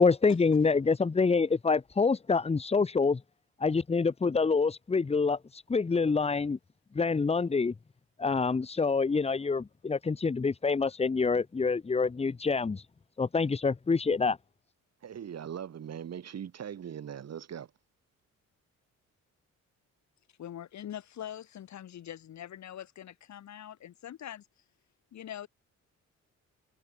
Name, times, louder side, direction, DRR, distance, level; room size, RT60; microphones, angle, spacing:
voice 1, 0.0-3.2 3.6-5.4 5.7-6.6 6.9-7.7 8.2-12.8 13.2-14.4, left 4 dB, 20° left, 1.0 m, -26 dB
voice 2, 15.0-17.7, right 8 dB, 55° right, 6.6 m, -40 dB
voice 3, 20.4-24.5 25.1-25.5, left 11 dB, 65° left, 3.6 m, -43 dB
cardioid pair, 90°, 30 cm